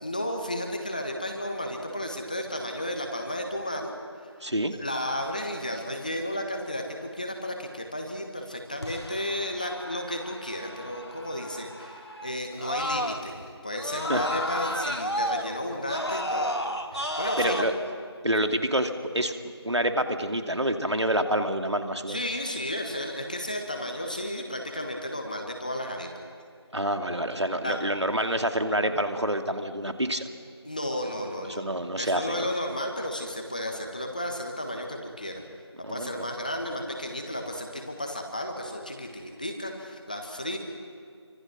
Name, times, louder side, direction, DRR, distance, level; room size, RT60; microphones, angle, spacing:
voice 1, 0.0-3.9 4.8-16.5 16.9-17.7 22.1-26.1 27.6-27.8 30.6-35.4 35.9-40.6, left 1 dB, 15° left, 3 dB, 1.4 m, -33 dB
voice 2, 4.4-4.7 13.9-14.3 17.1-17.7 18.2-19.3 19.6-22.2 26.7-30.2 31.4-32.5 35.8-36.2, right 1 dB, 75° right, 6 dB, 2.6 m, -27 dB
Screaming, 8.8-13.4 13.8-17.6, equal, 65° left, 2.5 m, -32 dB
29.5 x 25.0 x 6.2 m, 2.3 s
figure-of-eight pair, 170°, 15 cm